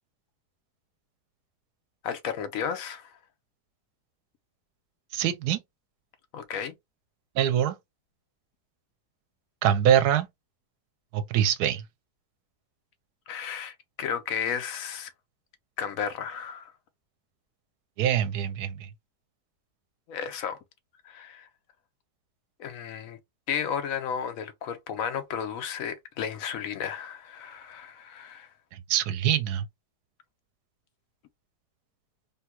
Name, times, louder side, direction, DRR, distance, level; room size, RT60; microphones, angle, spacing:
voice 1, 2.0-3.1 6.3-6.7 13.3-15.1 15.8-16.7 20.1-20.6 21.0-21.5 22.6-23.2 23.5-28.5, left 7 dB, 65° left, 0.9 m, -33 dB
voice 2, 5.1-5.6 7.4-7.7 9.6-10.3 11.1-11.8 18.0-18.9 28.9-29.6, right 10 dB, 80° right, 1.1 m, -24 dB
3.4 x 2.2 x 2.9 m
omnidirectional pair, 1.7 m